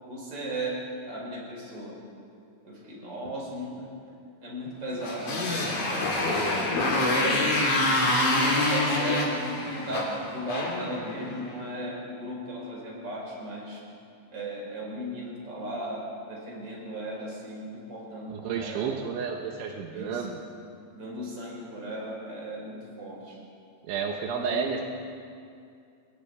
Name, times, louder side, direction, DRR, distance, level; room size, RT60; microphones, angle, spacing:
voice 1, 0.1-0.7 1.1-2.0 2.6-3.9 4.4-6.6 7.2-7.9 8.3-13.8 14.3-19.0 19.9-20.2 20.9-23.4 24.3-24.8, right 1 dB, 20° right, -3 dB, 5.6 m, -37 dB
Motorcycle, 5.0-11.5, left 2 dB, 40° left, 4.6 m, -26 dB
voice 2, 18.3-20.4 23.8-24.8, right 6 dB, 80° right, 2 dB, 3.6 m, -31 dB
28.5 x 21.0 x 4.9 m, 2.4 s
omnidirectional pair, 5.6 m